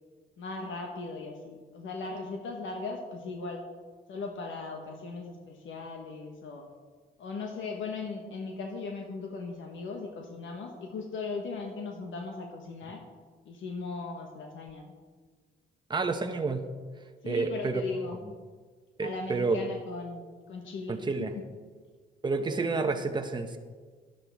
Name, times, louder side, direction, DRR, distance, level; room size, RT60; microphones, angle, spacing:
voice 1, 0.4-3.7 4.1-6.7 7.2-13.0 13.4-14.9 17.2-18.2 19.0-21.4, left 3 dB, 75° left, 2 dB, 1.3 m, -38 dB
voice 2, 15.9-16.6 17.2-17.8 19.0-19.6 20.9-21.3 22.2-23.6, right 4 dB, 20° right, 6 dB, 0.9 m, -29 dB
11.5 x 10.5 x 3.5 m, 1.5 s
cardioid pair, 90°, 20 cm